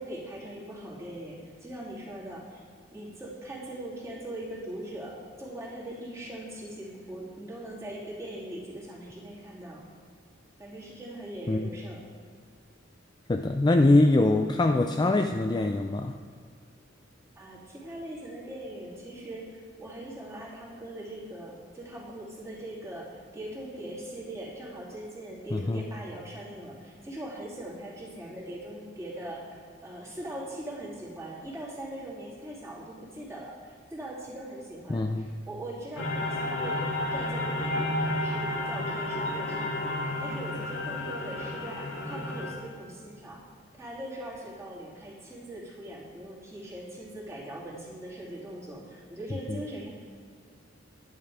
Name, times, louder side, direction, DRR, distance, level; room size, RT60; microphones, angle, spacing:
voice 1, 0.0-2.6 2.9-9.8 10.6-12.1 17.4-43.4 43.8-49.9, right 1 dB, 15° right, -6 dB, 2.8 m, -41 dB
voice 2, 13.3-16.1 25.5-25.8 34.9-35.3 49.5-49.6, left 2 dB, 20° left, 5 dB, 0.3 m, -23 dB
sound 1, 36.0-42.5, left 1 dB, 80° left, 2.1 m, -31 dB
11.0 x 10.5 x 4.9 m, 2.2 s
head